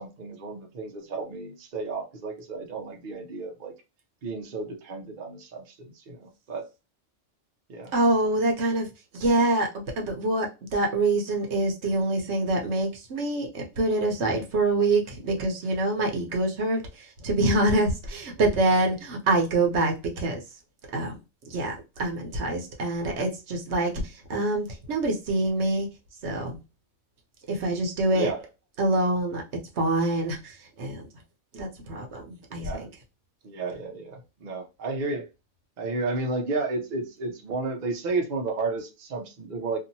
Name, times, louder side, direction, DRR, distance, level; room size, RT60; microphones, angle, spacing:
voice 1, 0.0-3.7 4.2-6.7 7.7-7.9 28.1-28.4 32.5-32.9 33.4-35.3 35.8-39.8, right 3 dB, 50° right, 0.7 m, -32 dB
voice 2, 7.9-8.9 9.1-9.7 10.0-20.4 20.9-21.2 21.4-23.9 24.3-25.9 26.2-26.6 27.5-28.3 28.8-29.4 29.8-31.1 31.5-32.9, right 2 dB, 65° right, 1.0 m, -25 dB
2.8 x 2.5 x 2.6 m
omnidirectional pair, 1.3 m